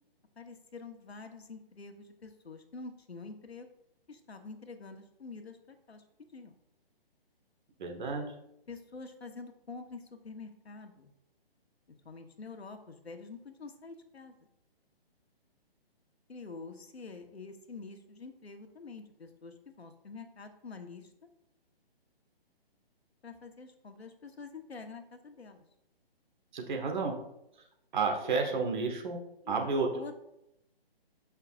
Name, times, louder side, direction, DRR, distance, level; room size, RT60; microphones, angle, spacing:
voice 1, 0.4-3.7 4.1-6.0 6.3-6.5 8.7-11.1 12.0-14.3 16.3-21.1 23.2-25.6 28.2-28.6 29.4-29.5 29.9-30.2, left 4 dB, 90° left, 6 dB, 1.2 m, -47 dB
voice 2, 7.8-8.3 26.5-27.1 27.9-29.2 29.5-29.9, right 4 dB, 50° right, 3 dB, 1.6 m, -31 dB
13.0 x 5.7 x 2.5 m, 0.82 s
hypercardioid pair, 145°, 31 cm